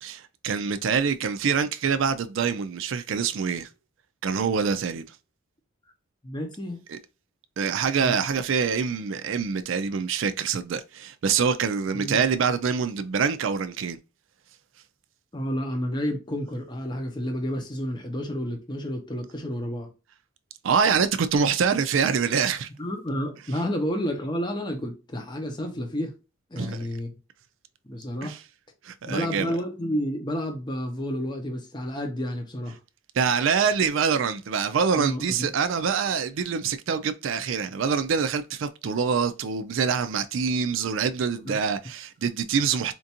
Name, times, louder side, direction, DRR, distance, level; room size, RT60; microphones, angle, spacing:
voice 1, 0.0-3.7 4.2-5.1 6.9-7.0 7.6-14.0 20.6-22.7 26.6-26.9 28.2-28.4 28.8-29.5 33.1-42.9, right 6 dB, 65° right, 0.4 m, -25 dB
voice 2, 6.2-6.8 8.0-8.2 11.9-12.2 15.3-19.9 22.8-26.1 26.5-27.1 27.9-28.4 29.0-32.8 34.9-35.5 41.5-41.6, equal, 20° left, 0.7 m, -30 dB
4.4 x 2.5 x 2.7 m
head